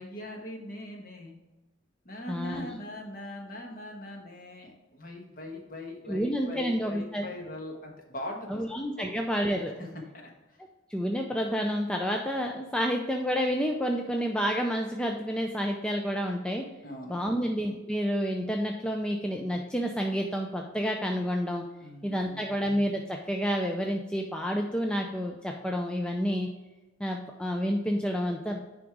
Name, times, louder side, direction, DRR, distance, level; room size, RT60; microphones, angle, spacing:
voice 1, 0.0-1.4 2.0-8.6 8.9-9.0 9.8-9.9 10.1-10.6 16.8-17.5 21.8-22.5, left 1 dB, 40° left, 1 dB, 1.3 m, -41 dB
voice 2, 2.3-2.7 6.1-7.3 8.5-9.7 10.9-16.7 17.1-21.6 22.0-26.5 27.0-28.6, equal, 5° left, 2 dB, 0.4 m, -29 dB
9.8 x 3.6 x 4.7 m, 1.1 s
head